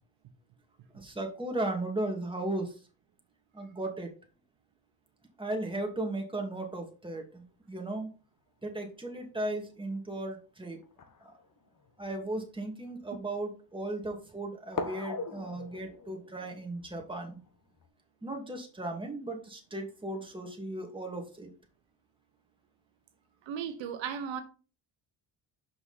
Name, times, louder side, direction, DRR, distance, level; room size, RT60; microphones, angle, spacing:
voice 1, 0.9-2.8 3.5-4.1 5.4-8.1 8.6-10.8 11.2-11.3 12.0-17.4 18.2-21.5, right 2 dB, 10° right, 2.2 m, -36 dB
sound 1, 9.5-9.6 10.8-12.1 12.8-12.9 14.7-17.9, left 4 dB, 45° left, 1.3 m, -41 dB
voice 2, 23.5-24.4, right 8 dB, 80° right, 1.1 m, -35 dB
5.9 x 5.8 x 4.1 m
cardioid pair, 85°, 45 cm